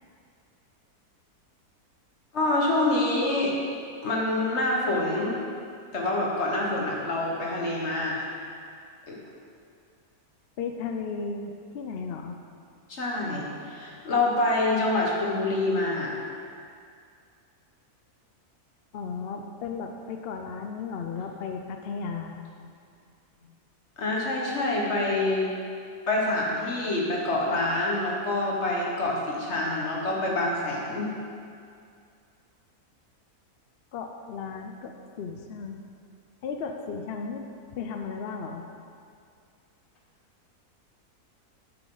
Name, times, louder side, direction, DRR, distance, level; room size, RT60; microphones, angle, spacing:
voice 1, 2.3-3.5 4.0-5.3 5.9-8.2 9.1-9.2 12.9-16.1 24.0-25.5 26.1-31.1, left 2 dB, 45° left, -3 dB, 1.7 m, -26 dB
voice 2, 10.6-12.4 18.9-22.4 33.9-35.8 36.4-37.4 37.7-38.6, left 5 dB, 65° left, 4 dB, 0.6 m, -35 dB
9.5 x 7.9 x 3.9 m, 2.3 s
omnidirectional pair, 1.6 m